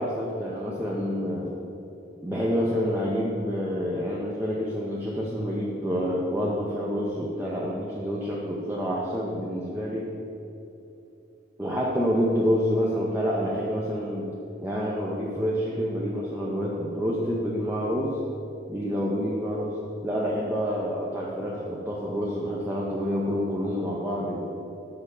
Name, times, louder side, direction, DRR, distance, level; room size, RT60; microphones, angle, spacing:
voice 1, 0.0-1.5 2.2-10.1 11.6-14.3 14.6-18.2 18.7-19.8 20.0-24.5, equal, 10° right, -5 dB, 0.7 m, -28 dB
6.9 x 4.7 x 6.9 m, 3.0 s
head